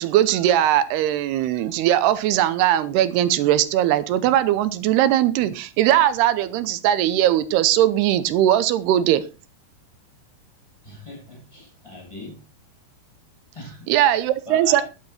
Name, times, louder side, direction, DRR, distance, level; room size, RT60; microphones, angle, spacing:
voice 1, 0.0-9.2 13.9-14.8, right 12 dB, 85° right, 2.8 m, -19 dB
voice 2, 10.8-12.4 13.5-13.9 14.5-14.8, left 1 dB, 5° left, 7.1 m, -39 dB
11.5 x 9.7 x 4.4 m
omnidirectional pair, 4.7 m